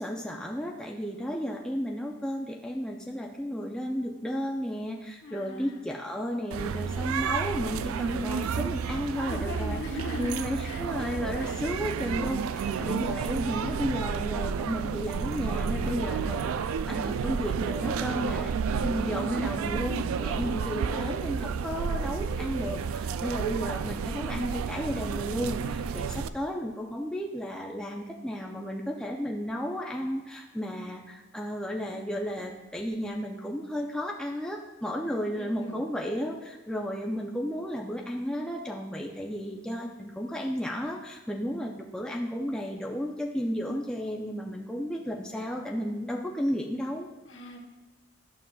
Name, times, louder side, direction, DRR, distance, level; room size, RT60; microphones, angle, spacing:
voice 1, 0.0-9.8 10.2-16.4 16.9-47.1, equal, 5° left, -1 dB, 0.4 m, -33 dB
voice 2, 5.2-5.8 9.3-10.8 11.4-11.6 12.2-12.3 12.7-12.9 35.1-35.8 47.3-47.6, left 2 dB, 60° left, 1 dB, 1.2 m, -40 dB
sound 1, 6.5-26.3, right 6 dB, 80° right, 0.3 m, -31 dB
11.5 x 7.2 x 2.3 m, 1.2 s
head